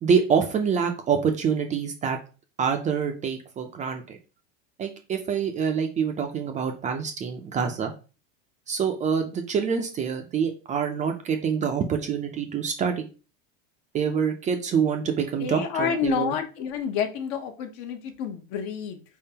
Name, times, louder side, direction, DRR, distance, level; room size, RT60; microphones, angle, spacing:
voice 1, 0.0-2.2 2.6-4.2 4.8-7.9 8.7-13.1 13.9-16.3, right 6 dB, 20° right, 4 dB, 0.5 m, -26 dB
voice 2, 15.4-19.0, left 7 dB, 55° left, 6 dB, 0.9 m, -29 dB
4.5 x 3.7 x 2.8 m, 0.34 s
supercardioid pair, 145°, 34 cm